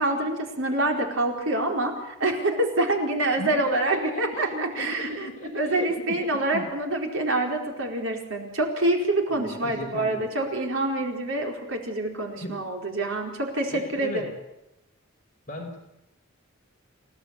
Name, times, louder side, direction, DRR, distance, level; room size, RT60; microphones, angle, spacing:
voice 1, 0.0-5.3 5.5-14.2, right 2 dB, 65° right, 2 dB, 4.6 m, -26 dB
voice 2, 3.4-5.9 6.2-6.7 9.3-10.3 12.4-12.6 13.7-14.3 15.5-15.8, left 1 dB, 40° left, 2 dB, 4.4 m, -36 dB
28.5 x 17.5 x 8.4 m, 0.89 s
head